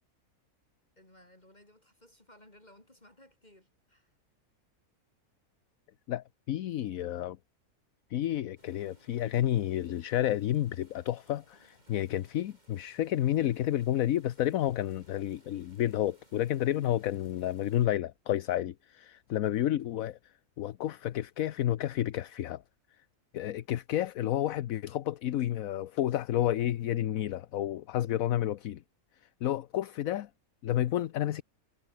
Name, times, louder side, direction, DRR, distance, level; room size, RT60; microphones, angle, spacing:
voice 1, 1.0-4.1, left 1 dB, 25° left, 4.1 m, -59 dB
voice 2, 6.1-7.4 8.1-20.2 20.6-22.6 23.3-28.8 29.4-30.3 30.6-31.4, left 12 dB, 70° left, 1.1 m, -30 dB
sound 1, 8.6-17.9, right 1 dB, 25° right, 7.4 m, -64 dB
omnidirectional pair, 1.6 m